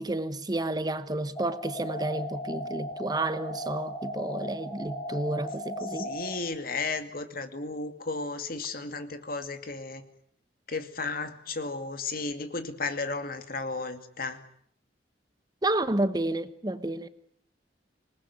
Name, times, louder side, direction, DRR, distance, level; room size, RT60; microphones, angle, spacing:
voice 1, 0.0-6.1 15.6-17.1, right 1 dB, 20° right, 1.0 m, -30 dB
sound 1, 1.4-6.4, equal, 20° left, 4.4 m, -37 dB
voice 2, 6.0-10.0 10.7-14.4, left 3 dB, 55° left, 2.5 m, -34 dB
26.0 x 20.0 x 9.5 m
head